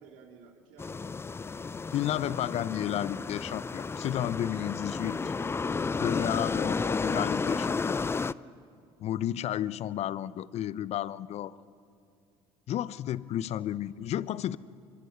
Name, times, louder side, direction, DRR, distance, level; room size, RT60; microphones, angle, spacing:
voice 1, 0.0-2.1 13.4-13.7, right 5 dB, 75° right, 3 dB, 3.0 m, -56 dB
sound 1, 0.8-8.3, left 4 dB, 20° left, 0.5 m, -32 dB
voice 2, 1.9-5.3 6.0-8.0 9.0-11.6 12.7-14.6, left 11 dB, 55° left, 18 dB, 0.7 m, -32 dB
24.5 x 23.0 x 6.9 m, 2.3 s
hypercardioid pair, 70°, 13 cm